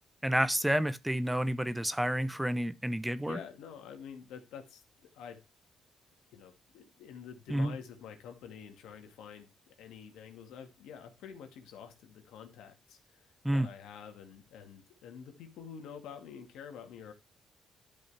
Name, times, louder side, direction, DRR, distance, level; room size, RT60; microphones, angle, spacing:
voice 1, 0.2-3.4 7.5-7.7 13.4-13.7, right 1 dB, 5° right, 0.8 m, -30 dB
voice 2, 3.2-5.4 6.3-17.1, left 7 dB, 85° left, 2.1 m, -48 dB
12.0 x 5.3 x 3.4 m
cardioid pair, 90°, 0 cm